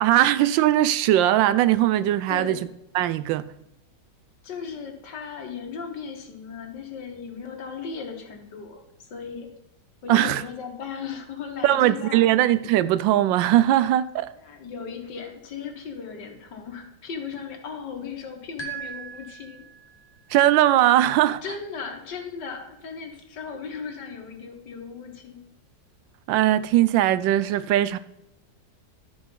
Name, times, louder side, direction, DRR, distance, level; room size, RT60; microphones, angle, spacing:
voice 1, 0.0-2.6 2.9-3.5 10.1-10.4 11.6-14.3 20.3-21.4 26.3-28.0, right 13 dB, 90° right, 1.3 m, -20 dB
voice 2, 2.3-2.6 4.4-9.5 10.0-12.4 14.4-19.7 21.4-25.4, left 6 dB, 70° left, 2.0 m, -37 dB
sound 1, 18.6-20.1, right 6 dB, 15° left, 1.1 m, -38 dB
12.5 x 4.9 x 5.4 m
omnidirectional pair, 2.0 m